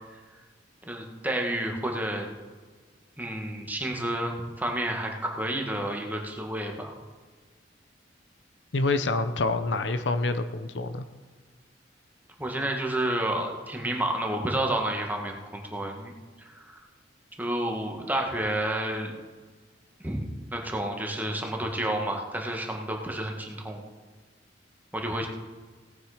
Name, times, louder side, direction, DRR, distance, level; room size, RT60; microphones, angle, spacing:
voice 1, 0.9-2.3 3.2-6.9 12.4-16.1 16.4-16.8 17.4-19.1 20.0-23.8 24.9-25.3, right 1 dB, 10° right, 2 dB, 1.6 m, -30 dB
voice 2, 8.7-11.0, left 3 dB, 70° left, 10 dB, 0.7 m, -27 dB
17.5 x 8.8 x 5.0 m, 1.4 s
head